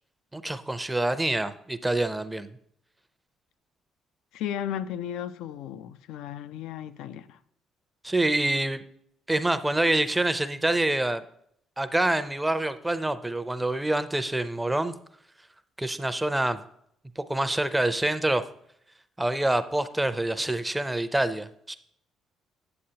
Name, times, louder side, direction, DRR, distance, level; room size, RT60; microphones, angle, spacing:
voice 1, 0.3-2.5 8.0-8.8 9.3-11.2 11.8-14.9 15.8-16.6 17.2-18.4 19.2-21.8, right 1 dB, 10° right, 0.5 m, -26 dB
voice 2, 4.3-7.4, left 10 dB, 85° left, 0.4 m, -35 dB
8.7 x 7.5 x 2.8 m
cardioid pair, 95°, 0 cm